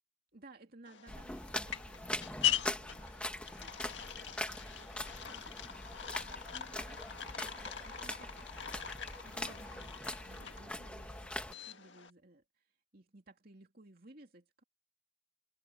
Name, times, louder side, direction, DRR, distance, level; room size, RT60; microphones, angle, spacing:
voice 1, 0.3-14.6, right 2 dB, 50° right, 2.8 m, -60 dB
sound 1, 0.8-12.1, left 11 dB, 65° left, 1.8 m, -41 dB
sound 2, 1.1-11.5, left 1 dB, 5° left, 1.3 m, -42 dB
head